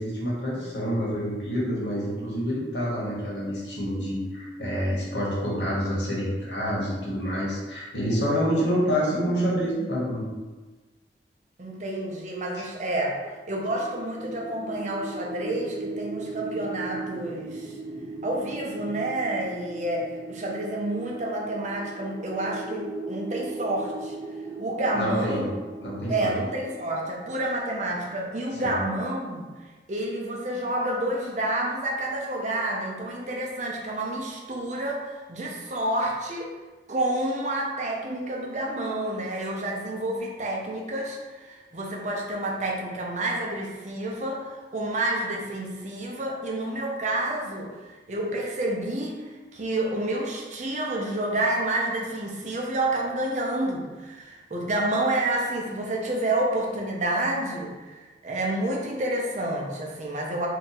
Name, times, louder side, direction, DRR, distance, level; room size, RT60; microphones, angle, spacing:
voice 1, 0.0-10.3 12.5-12.6 24.9-25.4 25.8-26.3 28.6-28.7, equal, 80° left, -6 dB, 1.2 m, -27 dB
voice 2, 11.6-13.2 13.5-17.8 18.2-24.2 24.6-25.5 26.1-29.4 29.9-36.5 36.9-47.7 48.1-60.5, right 1 dB, 40° right, -2 dB, 0.5 m, -29 dB
sound 1, 13.3-28.3, right 3 dB, 20° right, 0.8 m, -38 dB
2.7 x 2.3 x 4.1 m, 1.3 s
head